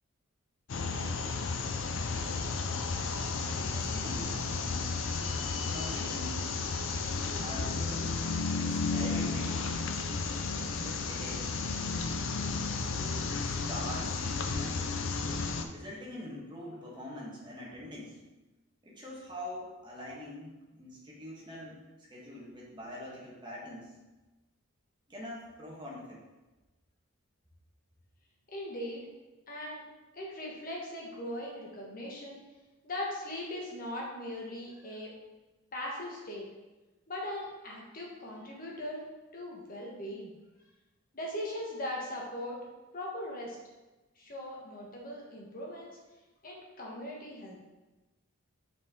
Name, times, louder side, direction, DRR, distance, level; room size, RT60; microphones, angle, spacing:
sound 1, 0.7-15.6, left 4 dB, 60° left, 0.5 m, -33 dB
voice 1, 3.5-4.4 5.6-6.4 7.4-8.2 8.6-9.6 10.8-11.5 12.8-14.2 14.6-14.9 15.7-18.2 18.8-23.9 25.1-26.2, left 1 dB, 20° right, -4 dB, 1.4 m, -44 dB
voice 2, 28.5-29.0 29.5-29.8 30.1-32.4 32.8-35.1 35.7-36.4 37.1-39.0 39.3-40.3 41.1-42.6 42.9-43.6 44.2-46.0 46.4-47.6, left 1 dB, 40° left, -3 dB, 1.3 m, -39 dB
6.1 x 4.5 x 3.6 m, 1.1 s
head